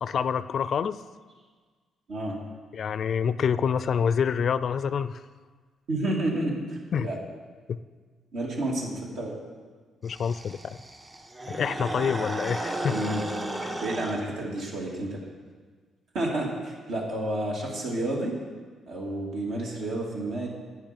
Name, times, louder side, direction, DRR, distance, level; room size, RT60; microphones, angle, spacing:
voice 1, 0.0-1.0 2.7-5.2 6.9-7.1 7.7-7.8 10.0-10.8 11.5-13.0 13.6-13.7, left 7 dB, 55° left, 14 dB, 0.4 m, -27 dB
voice 2, 2.1-2.4 5.9-7.2 8.3-9.3 12.9-13.2 13.7-15.2 16.1-18.4 18.9-20.5, right 1 dB, 75° right, -3 dB, 2.8 m, -30 dB
sound 1, 10.0-14.2, right 1 dB, 25° right, 1.5 m, -34 dB
11.0 x 9.3 x 5.3 m, 1.5 s
cardioid pair, 90°, 0 cm